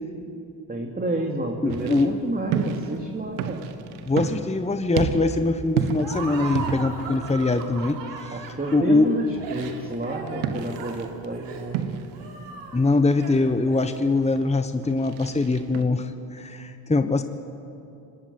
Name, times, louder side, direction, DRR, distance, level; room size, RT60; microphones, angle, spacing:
voice 1, 0.7-3.7 8.3-11.9, right 2 dB, 20° right, 1 dB, 2.7 m, -30 dB
voice 2, 1.6-2.1 4.1-8.4 8.7-9.1 12.7-17.2, left 3 dB, 15° left, 8 dB, 1.3 m, -23 dB
sound 1, 1.7-15.8, right 7 dB, 90° right, 1.4 m, -33 dB
Laughter, 6.0-14.3, right 5 dB, 70° right, 4.0 m, -38 dB
24.5 x 19.0 x 9.6 m, 2.8 s
supercardioid pair, 70°, 44 cm